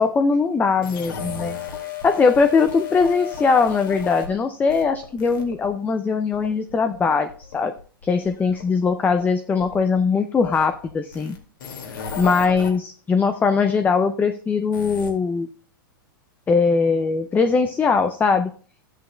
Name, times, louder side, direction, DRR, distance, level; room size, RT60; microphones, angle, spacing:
voice 1, 0.0-1.6 2.0-7.7 8.0-11.3 12.2-15.5 16.5-18.5, left 5 dB, 15° left, 9 dB, 0.5 m, -20 dB
sound 1, 0.8-4.4 4.7-5.7 6.3-10.0 10.4-12.7 14.7-15.1, left 7 dB, 65° left, 2.1 m, -35 dB
13.0 x 8.1 x 2.2 m, 0.44 s
hypercardioid pair, 110°, 11 cm